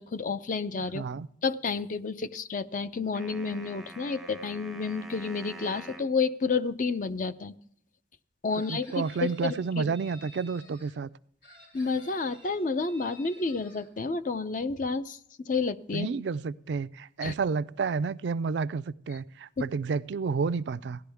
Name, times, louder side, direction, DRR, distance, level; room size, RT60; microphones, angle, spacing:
voice 1, 0.0-1.0 1.4-7.5 8.4-9.9 11.7-16.1 17.2-17.3 19.6-19.7, left 4 dB, 45° left, 0.5 m, -30 dB
voice 2, 0.9-1.3 8.7-11.1 15.9-21.0, right 5 dB, 75° right, 0.4 m, -30 dB
sound 1, 3.1-6.1, right 1 dB, ahead, 0.6 m, -45 dB
Chicken rooster, 8.5-10.9 11.4-13.8, left 1 dB, 75° left, 6.2 m, -53 dB
17.0 x 11.5 x 3.5 m
head